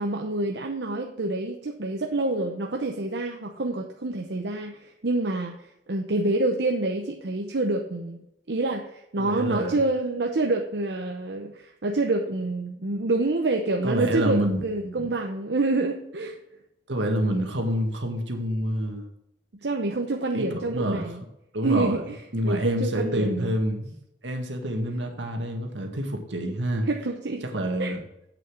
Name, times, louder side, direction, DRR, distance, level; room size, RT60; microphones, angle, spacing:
voice 1, 0.0-8.2 8.5-16.4 19.6-21.2 21.6-23.5 26.9-27.4 27.8-27.9, right 2 dB, 65° right, 3 dB, 0.8 m, -27 dB
voice 2, 9.2-9.8 13.8-15.1 16.9-19.1 20.3-21.1 21.5-22.0 22.3-23.9 24.2-26.9 27.5-28.0, equal, 85° right, 4 dB, 1.9 m, -27 dB
8.4 x 6.7 x 6.3 m, 0.82 s
head